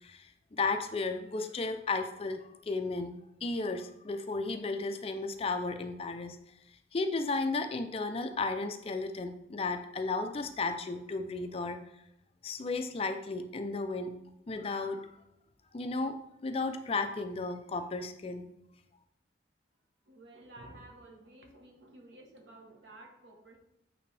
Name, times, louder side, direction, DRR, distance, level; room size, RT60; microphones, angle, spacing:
voice 1, 0.0-3.1 3.4-6.4 6.9-11.8 12.4-14.2 14.5-15.1 15.7-16.2 16.4-18.5, left 3 dB, 30° left, 8 dB, 0.4 m, -34 dB
voice 2, 20.1-23.6, right 2 dB, 80° right, 2 dB, 1.2 m, -53 dB
8.5 x 3.4 x 3.3 m, 0.81 s
head